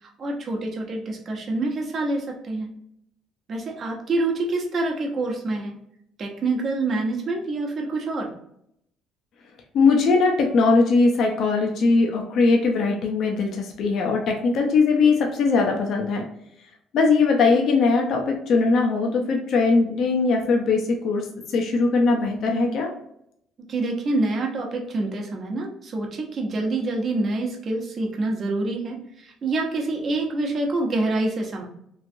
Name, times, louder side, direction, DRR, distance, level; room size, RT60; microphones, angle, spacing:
voice 1, 0.2-2.7 3.5-5.8 6.2-8.3 23.7-31.7, right 2 dB, 45° right, 1 dB, 0.8 m, -26 dB
voice 2, 9.7-16.2 16.9-22.9, left 4 dB, 60° left, 1 dB, 0.6 m, -20 dB
3.1 x 2.5 x 2.6 m, 0.73 s
supercardioid pair, 90°, 0 cm